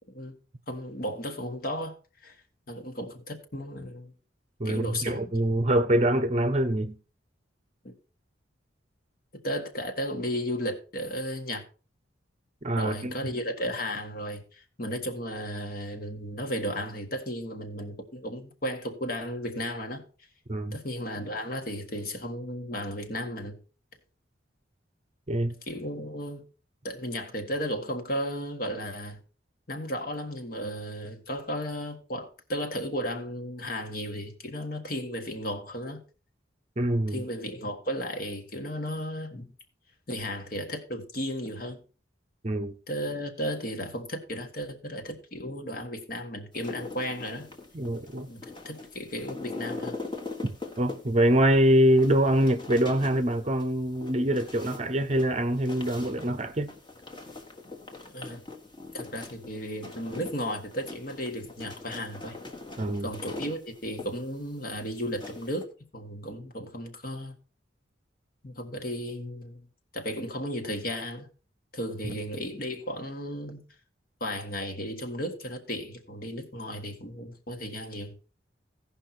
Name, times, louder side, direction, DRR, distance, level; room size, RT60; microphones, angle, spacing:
voice 1, 0.7-1.9 2.2-2.4 2.7-4.1 4.6-5.3 7.8-7.9 9.4-11.6 12.8-20.0 20.7-23.6 25.7-26.4 26.8-29.2 29.7-36.0 37.1-39.5 40.1-41.8 42.9-47.5 48.3-50.0 58.1-58.4 58.9-62.4 63.0-67.3 68.4-69.6 69.9-71.3 71.7-73.6 74.2-78.2, equal, 50° left, 1.6 m, -34 dB
voice 2, 4.6-6.9 12.6-13.1 20.5-20.8 25.3-25.5 36.8-37.2 42.4-42.7 47.7-48.3 50.4-50.5 50.8-56.7 62.8-63.1, right 1 dB, 35° right, 0.7 m, -24 dB
sound 1, 46.5-65.6, left 3 dB, 25° left, 1.4 m, -42 dB
16.5 x 5.6 x 4.3 m
head